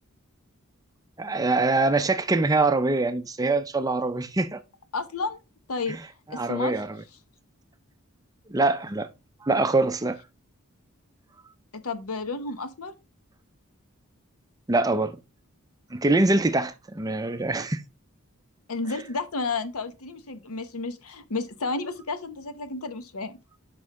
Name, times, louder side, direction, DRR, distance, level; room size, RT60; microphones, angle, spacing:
voice 1, 1.2-4.6 5.9-6.0 6.3-7.0 8.5-9.1 9.4-10.2 14.7-15.2 15.9-17.8, right 2 dB, 15° right, 0.4 m, -24 dB
voice 2, 4.9-5.4 5.7-6.0 6.3-6.8 11.7-12.9 18.7-23.4, left 3 dB, 85° left, 0.9 m, -31 dB
6.5 x 5.3 x 3.6 m
head